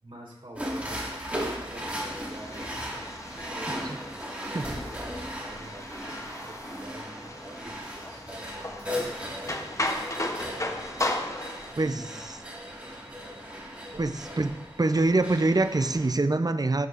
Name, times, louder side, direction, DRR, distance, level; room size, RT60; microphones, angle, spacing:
voice 1, 0.0-2.7 3.5-10.1 11.8-12.2 13.9-14.1, right 1 dB, 60° right, -5 dB, 3.1 m, -47 dB
sound 1, 0.6-16.1, equal, 15° right, 1.8 m, -37 dB
sound 2, 2.3-11.7, left 1 dB, 30° left, 0.8 m, -36 dB
voice 2, 11.8-12.4 14.0-14.5 14.8-16.9, right 2 dB, 40° right, 10 dB, 0.5 m, -25 dB
12.0 x 8.0 x 2.5 m, 0.90 s
wide cardioid pair, 60°, 10 cm